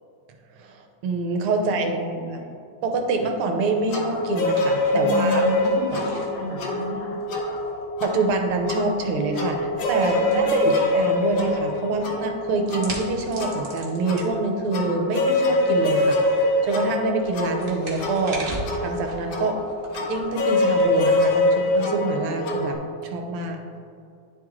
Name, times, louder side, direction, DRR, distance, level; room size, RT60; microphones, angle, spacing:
voice 1, 0.6-1.9 2.8-5.5 8.0-16.2 16.6-18.4 18.8-19.6 20.1-23.6, right 3 dB, 80° right, 4 dB, 1.6 m, -26 dB
voice 2, 1.6-2.6 4.9-7.2 10.1-10.7, left 1 dB, 85° left, -3 dB, 2.2 m, -31 dB
sound 1, 3.2-22.5, right 2 dB, 40° right, 0.8 m, -43 dB
sound 2, 3.9-22.7, left 1 dB, 70° left, 1.4 m, -24 dB
10.5 x 3.6 x 3.1 m, 2.4 s
omnidirectional pair, 2.4 m